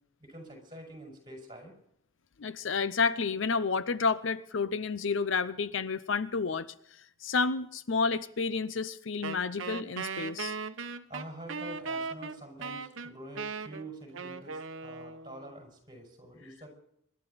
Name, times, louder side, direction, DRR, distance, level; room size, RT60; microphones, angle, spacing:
voice 1, 0.2-1.7 11.1-16.7, right 1 dB, 25° right, 1 dB, 5.9 m, -46 dB
voice 2, 2.4-6.7 7.2-10.5, left 4 dB, 65° left, 15 dB, 0.6 m, -30 dB
Wind instrument woodwind instrument, 9.2-15.5, right 5 dB, 70° right, 0.9 m, -38 dB
25.0 x 12.0 x 4.1 m, 0.72 s
head